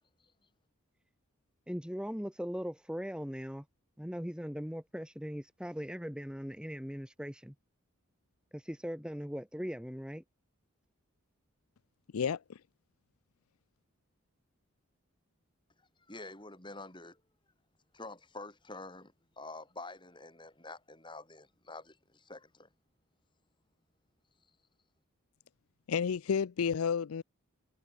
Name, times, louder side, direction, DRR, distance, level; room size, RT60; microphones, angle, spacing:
voice 1, 1.7-3.7 4.0-7.5 8.5-10.2, equal, 5° right, 1.7 m, -39 dB
voice 2, 12.1-12.6 25.9-27.2, left 6 dB, 80° left, 0.4 m, -31 dB
voice 3, 16.1-17.2 17.9-22.7, left 2 dB, 20° left, 7.5 m, -47 dB
head